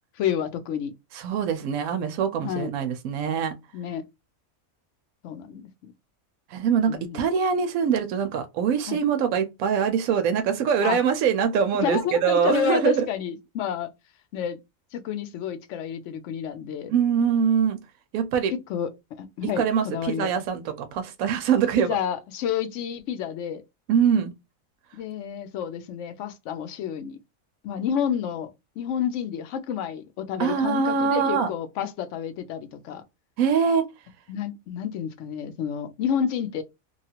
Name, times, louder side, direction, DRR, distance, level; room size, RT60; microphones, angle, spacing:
voice 1, 0.2-0.9 2.4-2.7 3.7-4.0 5.2-5.9 6.9-7.3 8.9-9.0 10.8-11.0 11.8-13.9 14.3-14.6 14.9-16.9 18.7-18.9 19.2-20.3 21.8-23.6 24.9-27.2 27.6-28.5 28.8-33.0 34.3-36.6, left 8 dB, 70° left, 0.8 m, -30 dB
voice 2, 1.1-3.5 6.5-13.1 16.9-17.8 18.1-18.5 19.6-22.0 23.9-24.3 30.4-31.5 33.4-33.8, right 7 dB, 85° right, 1.0 m, -23 dB
3.0 x 2.3 x 2.7 m
omnidirectional pair, 1.4 m